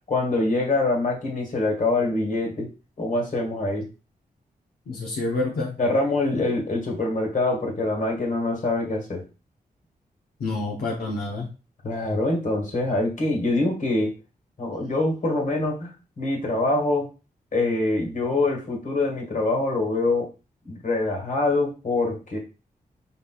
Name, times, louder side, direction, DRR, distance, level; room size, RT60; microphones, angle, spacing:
voice 1, 0.1-2.7 3.0-3.9 5.8-9.2 11.8-14.1 14.6-17.1 17.5-20.3 20.6-22.4, left 2 dB, 55° left, 1 dB, 1.7 m, -24 dB
voice 2, 4.9-5.7 6.3-6.4 10.4-11.5, left 2 dB, 80° left, -2 dB, 0.9 m, -28 dB
5.2 x 4.2 x 2.4 m, 0.32 s
wide cardioid pair, 90°, 16 cm